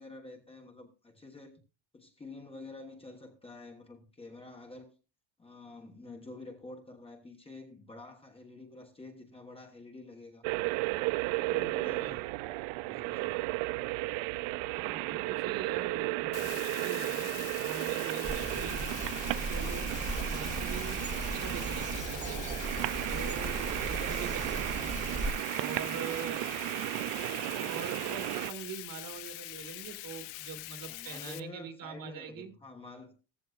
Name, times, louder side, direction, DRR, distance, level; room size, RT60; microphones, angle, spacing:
voice 1, 0.0-1.6 1.9-4.9 5.4-10.5 11.3-12.3 12.8-13.5 19.9-20.4 30.8-33.2, left 2 dB, 10° left, 1.2 m, -49 dB
sound 1, 10.4-28.5, right 21 dB, 80° right, 0.5 m, -34 dB
voice 2, 12.0-12.3 14.7-19.0 19.5-22.5 23.1-25.0 25.5-26.5 27.4-32.5, right 7 dB, 45° right, 1.9 m, -43 dB
Bathtub (filling or washing), 16.3-31.4, left 19 dB, 80° left, 0.8 m, -44 dB
sound 2, 18.2-25.3, right 2 dB, 15° right, 1.2 m, -37 dB
15.5 x 14.5 x 2.4 m
cardioid pair, 175°, 46 cm